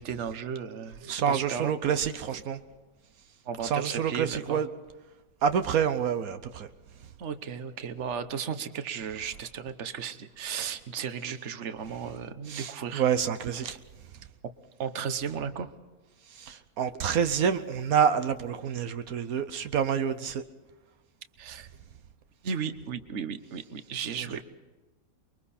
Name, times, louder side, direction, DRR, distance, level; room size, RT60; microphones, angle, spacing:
voice 1, 0.0-1.7 2.3-2.4 3.4-4.6 7.2-13.1 13.6-13.7 14.8-15.7 21.4-21.7 22.4-24.4, right 7 dB, 55° right, 10 dB, 1.3 m, -35 dB
voice 2, 1.1-2.6 3.6-4.7 5.4-6.7 12.5-13.8 16.4-20.4, right 7 dB, 85° right, 9 dB, 1.4 m, -27 dB
29.5 x 22.5 x 4.3 m, 1.2 s
omnidirectional pair, 1.5 m